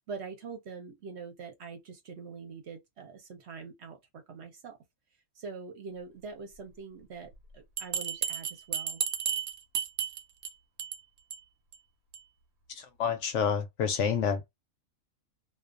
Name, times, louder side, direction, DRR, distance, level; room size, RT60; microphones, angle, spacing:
voice 1, 0.0-4.8 5.4-9.0, right 5 dB, 60° right, 0.8 m, -44 dB
Bell, 7.8-10.5 10.8-11.0 11.3-11.4 11.7-11.8 12.1-12.2, right 8 dB, 90° right, 1.0 m, -32 dB
voice 2, 12.7-14.5, left 7 dB, 70° left, 0.8 m, -29 dB
2.3 x 2.2 x 2.4 m
omnidirectional pair, 1.4 m